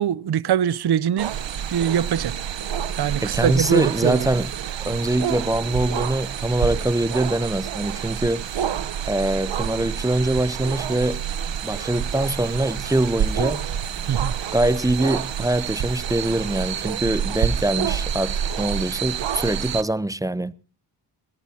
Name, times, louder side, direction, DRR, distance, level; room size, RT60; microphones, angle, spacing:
voice 1, 0.0-1.3 1.7-2.3 3.0-4.3 14.1-14.3, right 9 dB, 60° right, 0.7 m, -22 dB
sound 1, 1.2-19.8, right 9 dB, 80° right, 1.1 m, -28 dB
voice 2, 3.2-4.5 4.8-8.7 9.1-11.2 11.6-13.7 14.5-20.5, right 1 dB, 10° right, 0.7 m, -23 dB
22.5 x 17.5 x 2.8 m
cardioid pair, 75°, 44 cm